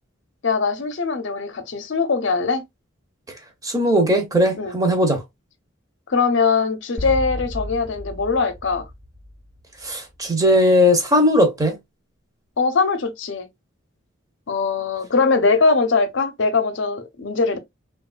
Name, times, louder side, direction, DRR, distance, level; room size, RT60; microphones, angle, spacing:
voice 1, 0.4-2.6 4.6-4.8 6.1-8.8 12.6-13.5 14.5-17.6, left 4 dB, 65° left, 0.6 m, -21 dB
voice 2, 3.6-5.2 9.8-11.7, left 1 dB, 15° right, 0.7 m, -18 dB
sound 1, 7.0-9.8, left 1 dB, 45° right, 1.1 m, -33 dB
3.0 x 2.3 x 2.3 m
head